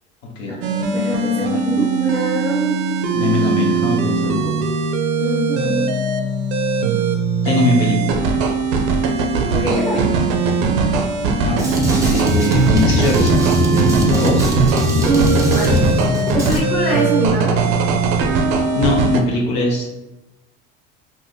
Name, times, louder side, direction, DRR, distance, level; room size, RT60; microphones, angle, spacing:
voice 1, 0.5-2.8 5.2-5.9 9.5-10.1 15.0-15.8 16.3-17.6, right 1 dB, 15° left, -7 dB, 1.3 m, -22 dB
sound 1, 0.6-19.2, right 4 dB, 75° right, 0.5 m, -20 dB
voice 2, 3.1-4.7 7.4-8.2 11.4-11.8 12.0-14.5 18.7-19.9, left 2 dB, 75° left, 0 dB, 0.7 m, -21 dB
Drum kit, 11.6-16.6, equal, 10° right, 0.4 m, -19 dB
3.4 x 2.2 x 2.6 m, 0.98 s
cardioid pair, 135°, 30 cm